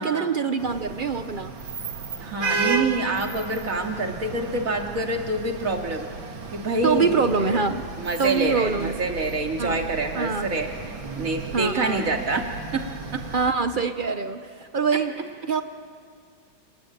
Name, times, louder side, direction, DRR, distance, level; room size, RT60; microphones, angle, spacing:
voice 1, 0.0-1.5 6.8-7.9 8.2-9.0 9.6-9.8 10.1-10.5 11.5-12.2 13.3-15.2 15.5-15.6, right 5 dB, 90° right, 9 dB, 0.4 m, -25 dB
sound 1, 0.6-13.5, right 4 dB, 70° right, 2.7 m, -34 dB
voice 2, 2.2-6.1 6.5-7.6 8.0-10.7 11.2-12.4 12.7-12.8 13.1-13.2, right 2 dB, 40° right, 3 dB, 2.6 m, -26 dB
28.5 x 20.0 x 9.2 m, 2.2 s
omnidirectional pair, 2.2 m